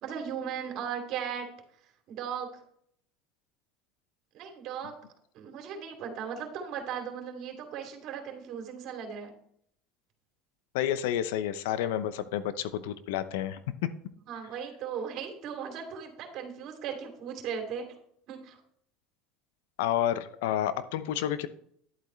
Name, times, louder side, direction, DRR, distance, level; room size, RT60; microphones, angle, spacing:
voice 1, 0.0-1.5 2.1-2.5 4.3-4.9 5.3-9.3 14.3-17.9 18.3-18.6, right 7 dB, 55° right, 3 dB, 2.8 m, -37 dB
voice 2, 10.7-13.9 19.8-21.5, left 11 dB, 75° left, 13 dB, 0.8 m, -30 dB
11.0 x 8.2 x 3.2 m, 0.67 s
hypercardioid pair, 80°, 0 cm